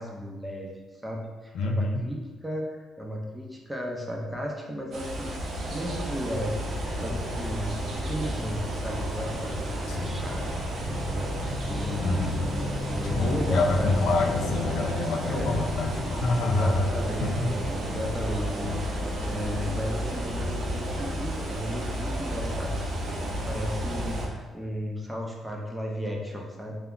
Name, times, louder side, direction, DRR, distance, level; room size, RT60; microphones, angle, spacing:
voice 1, 0.0-10.5 10.9-14.0 15.3-15.5 16.4-17.4 17.7-26.8, equal, 10° right, -1 dB, 0.6 m, -34 dB
voice 2, 1.5-2.1 9.9-10.2 12.0-12.4 13.0-17.5, left 3 dB, 80° left, 3 dB, 0.3 m, -27 dB
sound 1, 4.9-24.3, equal, 65° right, 0.7 m, -31 dB
2.3 x 2.1 x 3.6 m, 1.3 s
cardioid pair, 90°, 0 cm